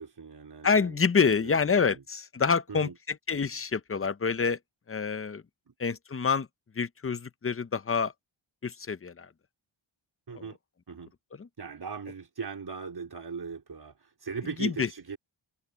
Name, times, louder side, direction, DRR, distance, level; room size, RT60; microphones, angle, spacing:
voice 1, 0.0-1.9 2.7-3.0 5.7-5.8 10.3-10.6 10.9-11.1 11.6-15.2, right 5 dB, 50° right, 4.2 m, -39 dB
voice 2, 0.6-4.6 4.9-5.4 5.8-6.5 6.7-8.1 8.6-9.3 10.3-10.4 11.4-11.5 14.6-14.9, left 5 dB, 25° left, 0.6 m, -27 dB
wide cardioid pair, 150°, 49 cm